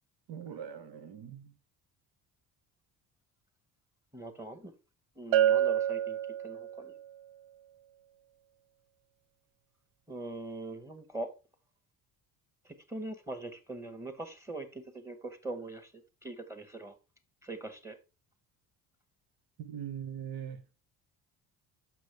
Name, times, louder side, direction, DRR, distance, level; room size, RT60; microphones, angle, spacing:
voice 1, 0.3-1.5 19.6-20.6, right 9 dB, 80° right, 1.2 m, -41 dB
voice 2, 4.1-4.7 5.1-7.0 10.1-11.3 12.6-16.9 17.4-18.0, right 2 dB, 5° right, 1.4 m, -42 dB
Bell, 5.3-7.0, right 10 dB, 60° right, 0.5 m, -27 dB
6.2 x 6.1 x 3.4 m
cardioid pair, 95°, 38 cm